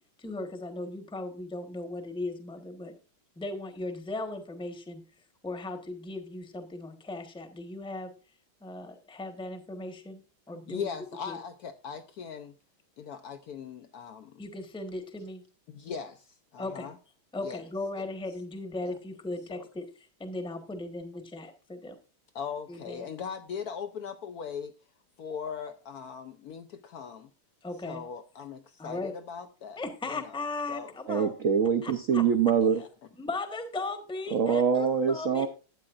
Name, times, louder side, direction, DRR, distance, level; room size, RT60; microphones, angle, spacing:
voice 1, 0.2-2.9 3.4-5.0 5.4-8.1 8.6-10.2 10.5-10.9 11.3-11.4 14.4-15.4 16.6-16.9 17.3-21.9 22.7-23.0 27.6-28.0 28.8-29.1 29.8-31.3 31.8-32.2 33.2-35.5, left 2 dB, 5° left, 0.7 m, -37 dB
voice 2, 10.5-12.5 13.0-14.4 15.7-16.3 16.5-17.0 17.4-17.6 18.0-18.1 18.8-19.0 19.5-19.7 22.3-24.7 25.2-27.3 27.8-30.3 30.7-30.9 32.6-32.9, left 7 dB, 80° left, 0.8 m, -39 dB
voice 3, 31.1-32.8 34.3-35.5, right 7 dB, 75° right, 0.7 m, -24 dB
12.5 x 8.7 x 2.5 m
omnidirectional pair, 2.3 m